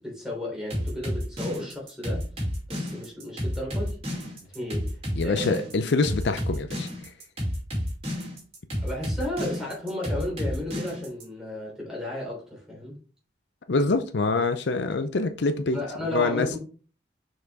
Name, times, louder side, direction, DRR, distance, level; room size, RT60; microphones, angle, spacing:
voice 1, 0.0-2.3 2.7-4.0 4.5-5.7 8.8-13.0 15.7-16.6, left 1 dB, 5° right, 3.3 m, -34 dB
sound 1, 0.7-11.2, equal, 35° right, 2.7 m, -30 dB
voice 2, 5.1-6.9 13.7-15.8 16.1-16.5, left 3 dB, 65° left, 0.5 m, -25 dB
6.4 x 4.9 x 3.5 m
head